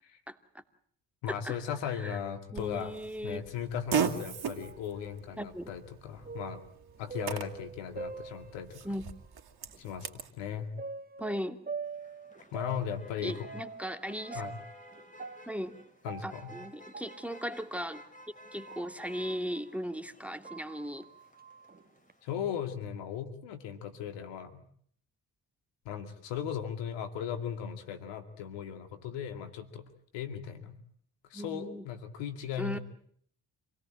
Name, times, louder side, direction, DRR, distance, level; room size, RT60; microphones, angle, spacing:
voice 1, 0.3-0.6 1.3-1.6 2.0-2.2 2.5-3.4 5.4-5.7 8.8-9.0 11.2-11.6 13.2-14.4 15.5-15.8 16.2-18.0 18.5-21.1 31.3-31.8 32.6-32.8, equal, 5° right, 8 dB, 2.6 m, -37 dB
voice 2, 1.2-2.9 3.2-6.7 7.0-8.9 9.8-10.7 12.5-13.5 14.3-14.5 16.0-16.5 22.2-24.6 25.9-30.8 31.3-32.8, left 8 dB, 80° left, 9 dB, 2.3 m, -37 dB
Fart, 2.6-10.3, right 8 dB, 60° right, 2.8 m, -38 dB
sound 1, 4.6-9.2 9.7-9.8 10.8-19.8 20.2-22.1, right 4 dB, 20° right, 1.8 m, -45 dB
Motor vehicle (road), 11.8-22.3, equal, 20° left, 5.3 m, -55 dB
27.5 x 17.5 x 8.9 m, 0.62 s
hypercardioid pair, 45°, 43 cm